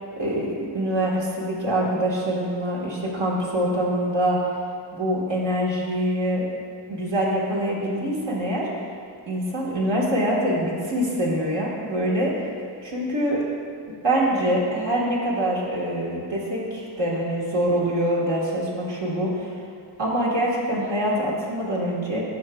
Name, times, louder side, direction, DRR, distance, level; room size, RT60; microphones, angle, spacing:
voice 1, 0.2-4.4 4.9-6.4 6.9-8.7 9.3-12.3 12.8-13.4 14.0-19.5 20.0-22.2, right 1 dB, 85° right, -5 dB, 1.6 m, -24 dB
9.4 x 6.5 x 2.3 m, 2.5 s
cardioid pair, 60°, 43 cm